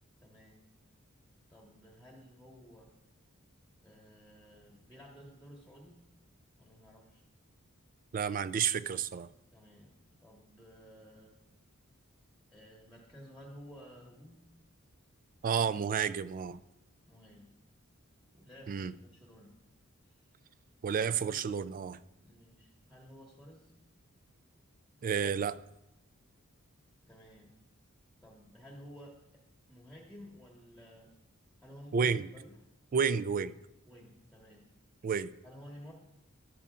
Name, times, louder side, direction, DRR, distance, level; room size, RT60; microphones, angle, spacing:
voice 1, 0.2-0.6 1.5-2.9 3.8-6.0 6.6-7.2 9.5-11.3 12.5-14.4 17.1-17.5 18.3-19.6 20.0-20.3 22.2-23.7 27.1-27.5 28.2-29.2 29.7-31.1 31.6-32.5 33.9-34.6 35.4-35.9, equal, ahead, 1.4 m, -53 dB
voice 2, 8.1-9.3 15.4-16.6 18.7-18.9 20.8-22.0 25.0-25.6 31.9-32.3 32.9-33.5 35.0-35.3, right 6 dB, 40° right, 0.3 m, -31 dB
14.0 x 12.0 x 2.5 m
head